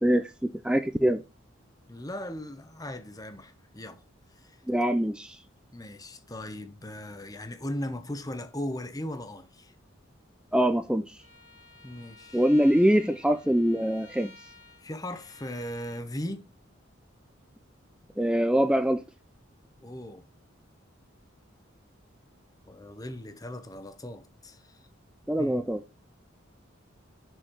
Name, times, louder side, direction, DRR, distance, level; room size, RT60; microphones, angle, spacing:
voice 1, 0.0-1.2 4.7-5.4 10.5-11.0 12.3-14.3 18.2-19.0 25.3-25.8, equal, 5° right, 0.5 m, -24 dB
voice 2, 1.9-4.0 4.4-4.6 5.7-9.7 11.8-12.4 14.8-16.5 19.8-20.3 22.7-24.8 25.4-25.6, left 1 dB, 20° left, 1.0 m, -38 dB
Bowed string instrument, 11.2-16.1, left 2 dB, 70° left, 3.7 m, -53 dB
6.4 x 6.3 x 4.9 m
head